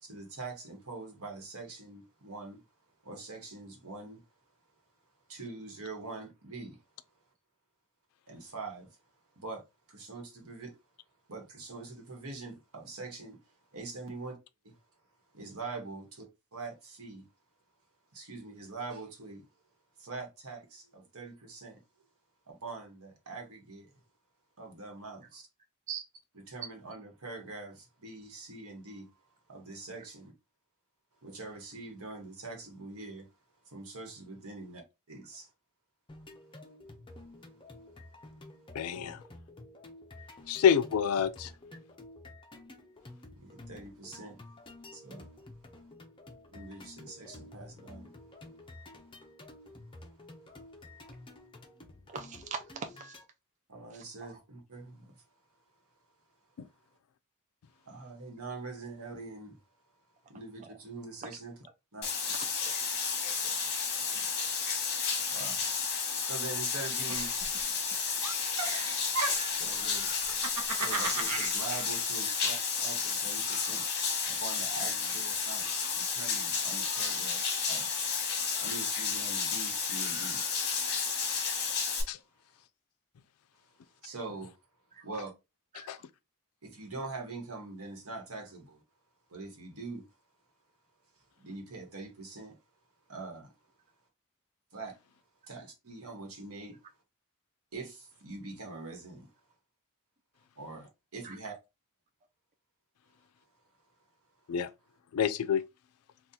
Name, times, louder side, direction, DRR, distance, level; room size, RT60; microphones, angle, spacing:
voice 1, 0.0-2.6 3.0-4.2 5.3-6.8 8.3-8.9 9.4-9.6 9.9-10.8 11.3-13.4 13.7-14.3 14.6-14.8 15.3-17.3 18.1-19.5 20.0-21.8 22.5-23.9 24.6-25.5 26.3-29.1 29.5-30.3 31.2-33.3 33.6-34.8 35.1-35.5 39.0-39.1 43.4-44.4 44.9-45.3 46.5-48.1 53.7-55.2 57.9-59.6 60.3-61.5 61.9-62.7 63.2-63.7 64.1-64.3 65.3-65.7 66.3-67.3 69.6-70.1 70.5-73.9 74.3-77.9 78.6-80.4 84.0-84.5 85.0-85.3 86.6-88.8 89.3-90.1 91.4-92.5 93.1-93.5 94.7-95.0 95.5-96.8 97.7-99.3 100.6-101.6, right 3 dB, 70° right, 1.2 m, -44 dB
sound 1, 36.1-53.2, left 2 dB, 20° left, 0.6 m, -51 dB
voice 2, 38.8-39.2 40.5-41.5 82.1-82.2 85.9-86.0 104.5-104.7 105.1-105.6, left 8 dB, 75° left, 0.4 m, -27 dB
voice 3, 52.1-53.2 53.9-54.4 62.3-62.5 65.2-65.3 84.9-85.1 85.7-85.9 101.2-101.3, right 6 dB, 35° right, 0.4 m, -41 dB
Bathtub (filling or washing), 62.0-82.0, left 5 dB, 50° left, 1.0 m, -32 dB
Giggle, 67.1-67.9 68.2-69.7 70.2-71.5, right 4 dB, 85° right, 0.8 m, -35 dB
2.8 x 2.4 x 3.7 m
head